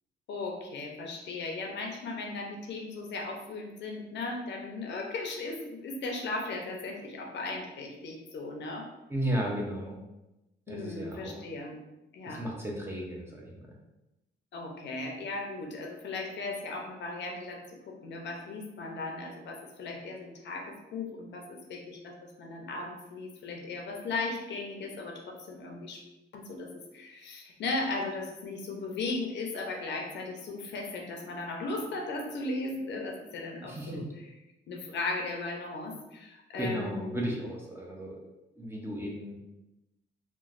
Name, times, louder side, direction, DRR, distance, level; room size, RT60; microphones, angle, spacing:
voice 1, 0.3-8.9 10.7-11.8 12.1-12.4 14.5-26.0 26.3-34.3 34.7-37.2, left 3 dB, 65° left, 1 dB, 0.6 m, -37 dB
voice 2, 9.1-10.0 10.7-11.4 12.2-13.7 33.6-34.0 36.6-38.2 38.6-39.4, equal, 10° right, -2 dB, 0.6 m, -34 dB
3.0 x 2.2 x 2.5 m, 0.95 s
cardioid pair, 90°, 20 cm